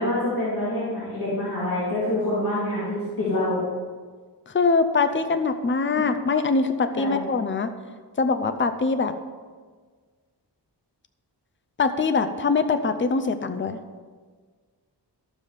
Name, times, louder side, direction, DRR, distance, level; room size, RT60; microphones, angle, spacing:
voice 1, 0.0-3.6 5.9-6.0 6.9-7.2, left 1 dB, 55° left, -10 dB, 2.8 m, -26 dB
voice 2, 4.5-7.7 8.2-9.1 11.8-13.8, left 4 dB, 30° left, 10 dB, 0.6 m, -23 dB
12.0 x 7.5 x 5.0 m, 1.5 s
wide cardioid pair, 105°, 41 cm